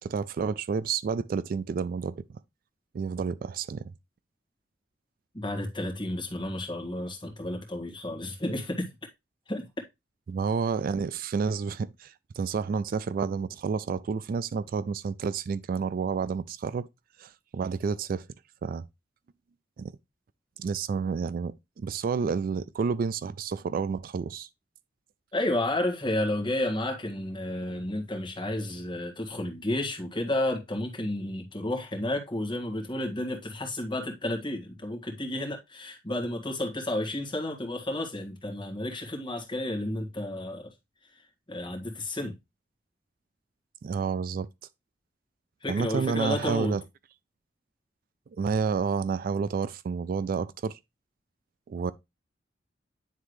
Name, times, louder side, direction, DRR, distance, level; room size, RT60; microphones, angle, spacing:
voice 1, 0.0-2.4 2.9-3.9 10.3-16.9 17.2-18.3 18.6-18.8 19.8-19.9 20.6-24.5 43.8-44.5 45.7-46.8 48.4-50.8 51.7-51.9, right 5 dB, 50° right, 0.3 m, -30 dB
voice 2, 5.3-8.9 9.5-9.6 25.3-40.7 41.0-41.2 41.5-42.3 45.6-46.7, left 1 dB, 25° left, 1.7 m, -31 dB
9.6 x 3.6 x 3.1 m
head